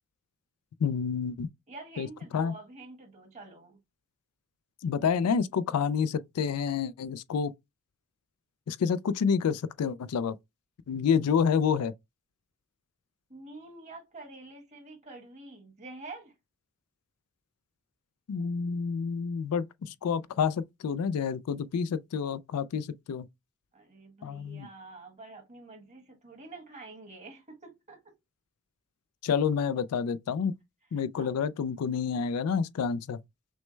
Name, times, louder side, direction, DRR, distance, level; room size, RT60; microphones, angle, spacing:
voice 1, 0.8-1.5 2.0-2.1 2.3-2.5 4.8-7.5 8.7-10.3 10.9-11.9 18.3-23.3 24.2-24.7 29.2-30.5 30.9-33.2, left 6 dB, 90° left, 0.4 m, -28 dB
voice 2, 1.7-3.8 13.3-16.3 23.7-28.1 30.9-31.3, right 3 dB, 30° right, 1.5 m, -47 dB
6.2 x 2.1 x 3.2 m
head